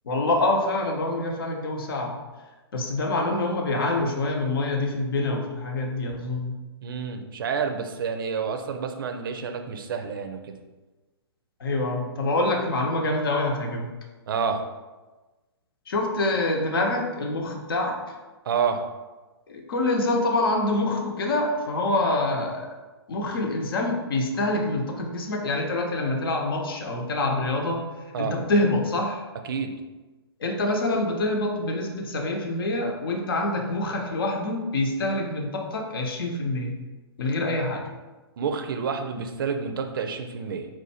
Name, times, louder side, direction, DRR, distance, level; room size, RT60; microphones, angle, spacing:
voice 1, 0.0-2.2 2.7-6.5 11.6-13.9 15.9-18.0 19.5-22.7 23.1-27.8 28.2-29.2 30.4-36.7 37.2-37.8, left 2 dB, 60° left, 2 dB, 0.9 m, -26 dB
voice 2, 6.8-10.5 14.3-14.6 18.4-18.8 28.1-28.4 29.4-29.7 38.4-40.7, right 6 dB, 55° right, 6 dB, 0.5 m, -29 dB
4.5 x 2.7 x 4.2 m, 1.2 s
figure-of-eight pair, 125°, 14 cm